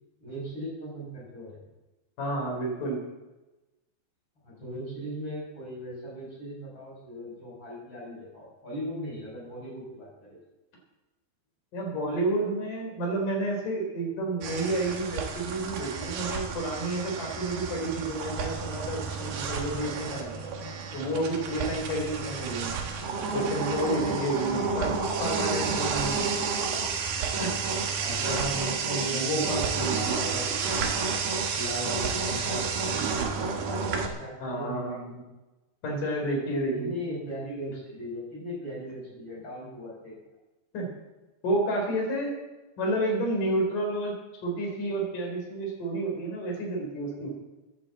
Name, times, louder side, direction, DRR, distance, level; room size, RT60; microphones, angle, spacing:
voice 1, 0.2-1.6 4.4-10.3 24.5-24.7 28.0-28.5 29.0-30.5 31.5-35.3 36.7-40.1, equal, 25° left, -5 dB, 6.3 m, -38 dB
voice 2, 2.2-3.0 11.7-20.3 20.9-22.8 23.3-26.2 27.4-27.5 28.2-30.0 34.4-35.2 35.8-36.9 40.7-40.9 41.4-42.4 42.8-44.2 44.4-47.3, right 1 dB, 50° left, 0 dB, 5.2 m, -30 dB
sound 1, 14.4-34.1, right 5 dB, 65° right, 3.1 m, -30 dB
11.5 x 11.0 x 7.8 m, 1.1 s
omnidirectional pair, 5.0 m